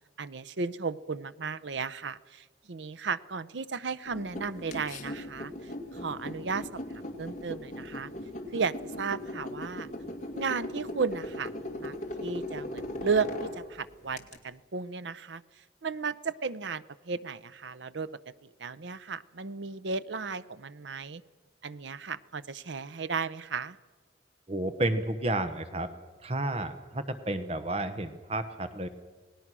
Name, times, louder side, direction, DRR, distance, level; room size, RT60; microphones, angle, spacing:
voice 1, 0.2-8.1 8.5-9.9 10.3-11.5 11.8-11.9 12.2-15.4 15.8-18.1 18.4-21.2 21.6-23.8, right 5 dB, 75° right, 16 dB, 0.7 m, -34 dB
sound 1, 4.1-14.4, left 1 dB, 40° left, 2.5 m, -39 dB
voice 2, 24.5-25.9 26.2-28.9, right 1 dB, 35° right, 9 dB, 1.0 m, -31 dB
28.0 x 19.0 x 6.2 m, 1.4 s
head